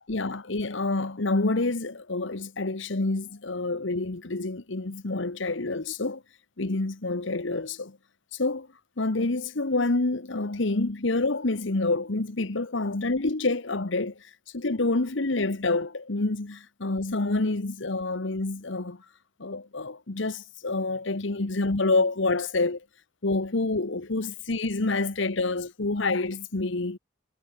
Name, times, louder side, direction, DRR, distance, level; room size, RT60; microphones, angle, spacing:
voice 1, 0.1-6.2 6.6-8.0 8.3-8.7 9.0-14.3 14.5-19.0 19.4-22.8 23.2-27.0, left 2 dB, 65° left, 1.2 m, -27 dB
head